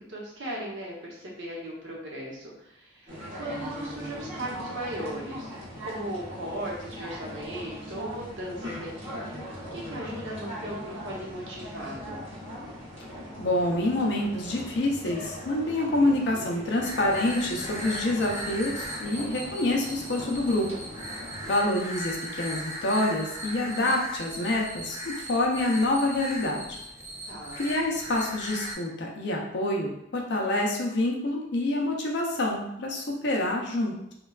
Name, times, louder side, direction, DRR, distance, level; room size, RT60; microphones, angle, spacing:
voice 1, 0.1-5.5 5.8-12.2 27.3-27.6, right 1 dB, 70° right, -4 dB, 0.8 m, -37 dB
sound 1, 3.1-21.5, equal, 30° right, 0.8 m, -40 dB
voice 2, 13.4-20.7 21.5-26.7 27.6-33.9, left 1 dB, 60° left, 0 dB, 0.5 m, -27 dB
sound 2, 16.8-28.7, equal, 15° right, 0.4 m, -38 dB
3.2 x 2.2 x 2.3 m, 0.79 s
head